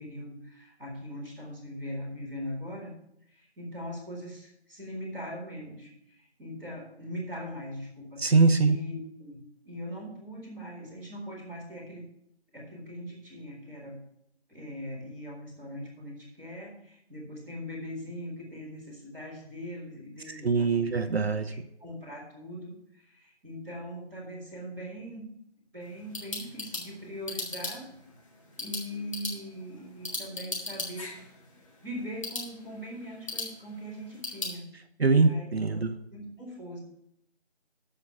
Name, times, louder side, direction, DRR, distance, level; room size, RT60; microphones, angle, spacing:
voice 1, 0.0-2.9 3.3-8.2 8.6-12.1 12.5-14.0 14.5-21.1 21.8-25.3 25.7-27.9 28.6-31.1 31.8-34.8 35.2-35.4 35.7-36.8, equal, 5° right, -13 dB, 2.0 m, -41 dB
voice 2, 8.2-8.8 20.4-21.5 35.0-35.9, right 4 dB, 65° right, 9 dB, 0.7 m, -23 dB
sound 1, 25.8-34.6, left 3 dB, 30° left, 1.8 m, -39 dB
13.5 x 4.4 x 6.9 m, 0.77 s
figure-of-eight pair, 165°, 33 cm